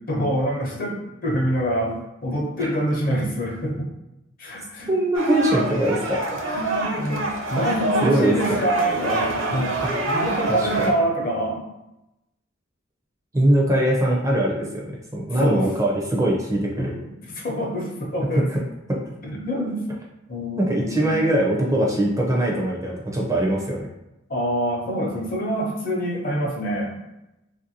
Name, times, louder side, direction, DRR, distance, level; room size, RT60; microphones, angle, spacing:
voice 1, 0.1-1.9 2.2-3.7 4.4-4.9 6.3-9.8 10.1-11.6 15.4-15.7 16.8-17.1 17.3-18.4 19.2-19.9 20.3-21.1 21.5-21.7 24.3-26.9, equal, 45° left, -2 dB, 0.7 m, -26 dB
voice 2, 4.9-6.2 7.6-7.7 8.0-8.6 9.8-9.9 10.5-10.9 13.3-16.9 18.3-18.6 18.9-19.0 20.6-23.9, right 1 dB, 15° right, -2 dB, 0.4 m, -22 dB
sound 1, 5.1-10.9, right 2 dB, 70° right, 0.6 m, -26 dB
2.9 x 2.5 x 2.7 m, 0.91 s
head